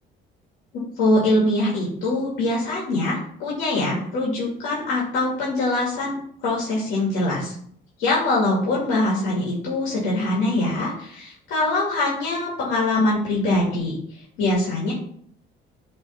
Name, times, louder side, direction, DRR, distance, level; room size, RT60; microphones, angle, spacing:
voice 1, 1.0-7.5 8.0-13.9 14.4-14.9, left 2 dB, 90° left, -4 dB, 2.0 m, -23 dB
8.0 x 3.5 x 4.2 m, 0.63 s
cardioid pair, 110°, 20 cm